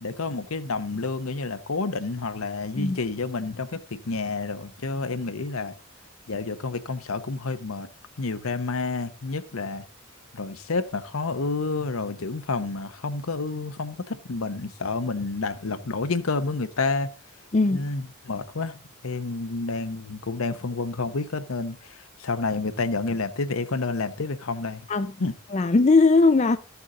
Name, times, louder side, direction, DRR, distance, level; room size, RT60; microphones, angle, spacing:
voice 1, 0.0-5.7 6.3-7.9 8.2-9.8 10.3-17.1 17.7-18.7 19.0-24.9 25.2-25.3, left 3 dB, 80° left, 0.9 m, -29 dB
voice 2, 17.5-17.9 24.9-25.2 25.5-26.6, left 3 dB, 30° left, 0.4 m, -19 dB
13.0 x 7.1 x 3.8 m
head